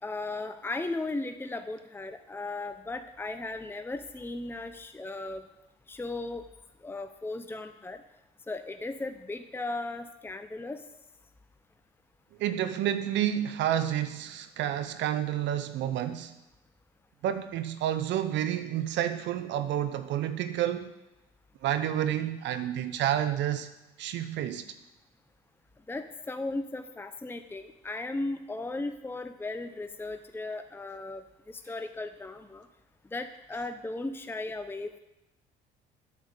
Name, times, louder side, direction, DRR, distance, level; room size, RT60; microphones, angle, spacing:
voice 1, 0.0-5.5 5.9-6.4 6.8-8.0 8.5-10.8 25.9-32.7 33.1-35.0, left 2 dB, 10° left, 8 dB, 0.7 m, -36 dB
voice 2, 12.4-16.3 17.2-20.9 21.6-23.7 24.0-24.7, right 11 dB, 65° right, 11 dB, 0.8 m, -29 dB
8.5 x 7.3 x 8.3 m, 0.95 s
supercardioid pair, 65°, 20 cm